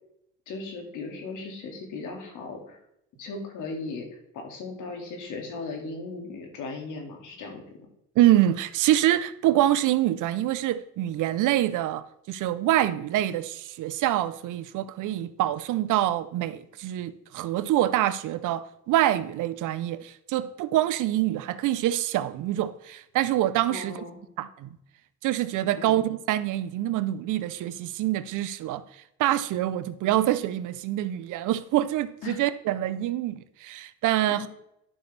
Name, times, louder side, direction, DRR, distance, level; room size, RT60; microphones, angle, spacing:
voice 1, 0.5-2.8 3.2-7.6 23.7-24.2 25.7-26.1 32.2-32.4 34.3-34.5, left 3 dB, 85° left, 2.2 m, -37 dB
voice 2, 8.2-24.0 24.4-24.7 25.2-28.8 29.2-34.5, right 13 dB, 85° right, 0.7 m, -25 dB
11.0 x 6.1 x 3.3 m
cardioid pair, 90°, 30 cm